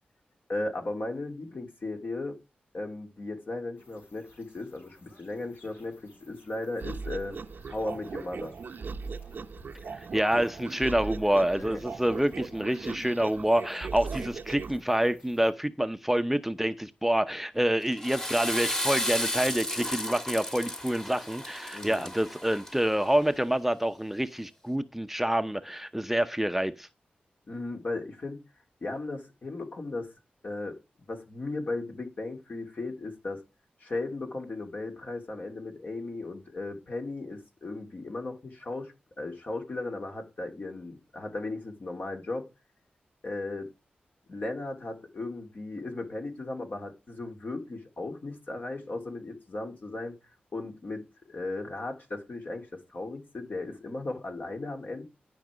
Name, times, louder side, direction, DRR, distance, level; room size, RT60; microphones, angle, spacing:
voice 1, 0.5-2.4 2.7-7.4 7.7-8.5 11.5-11.8 21.7-22.1 27.5-28.4 28.8-30.1 30.4-30.8 31.1-33.4 33.8-42.5 43.2-43.7 44.3-50.2 50.5-55.0, left 2 dB, 55° left, 2.8 m, -36 dB
sound 1, 3.8-15.5, left 1 dB, 80° left, 4.9 m, -56 dB
sound 2, 6.8-14.8, right 5 dB, 70° right, 0.7 m, -39 dB
voice 2, 9.9-26.9, right 1 dB, 5° right, 0.7 m, -27 dB
Water / Toilet flush, 17.8-23.0, left 1 dB, 20° left, 1.8 m, -33 dB
10.5 x 5.4 x 5.0 m
cardioid pair, 50°, 3 cm